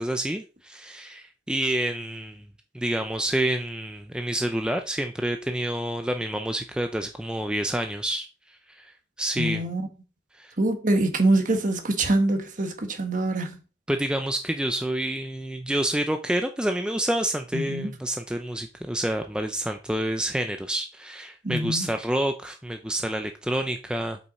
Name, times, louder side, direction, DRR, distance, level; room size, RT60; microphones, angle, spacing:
voice 1, 0.0-2.4 2.7-9.6 10.3-10.5 13.9-24.3, right 1 dB, 5° right, 0.4 m, -28 dB
voice 2, 9.4-9.8 10.6-13.6 17.5-17.9 21.4-21.9, right 2 dB, 45° right, 1.4 m, -24 dB
7.9 x 5.5 x 4.1 m
head